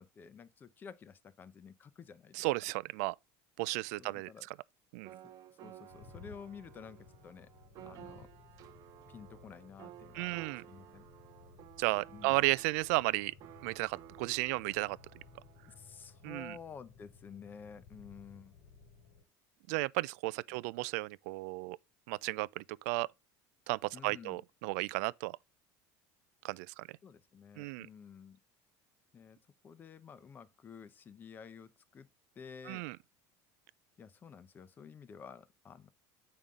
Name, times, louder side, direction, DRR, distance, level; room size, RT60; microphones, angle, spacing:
voice 1, 0.0-2.4 4.0-4.5 5.6-7.5 7.8-8.3 9.1-11.1 12.1-12.5 15.7-18.5 20.5-20.6 23.9-24.4 27.0-28.4 29.1-29.4 29.6-32.1 32.4-32.9 34.0-35.9, left 6 dB, 20° left, 0.7 m, -51 dB
voice 2, 2.3-3.2 3.6-4.3 4.9-5.1 10.1-10.6 11.8-13.3 13.6-15.2 16.2-16.6 19.7-21.8 22.1-23.1 23.7-25.4 26.4-26.9 27.6-27.9 32.7-33.0, right 22 dB, 85° right, 0.4 m, -34 dB
sound 1, 5.0-16.4, right 13 dB, 40° right, 0.7 m, -55 dB
sound 2, 5.9-19.2, left 5 dB, 90° left, 2.4 m, -58 dB
8.8 x 5.4 x 3.7 m
cardioid pair, 165°, 9 cm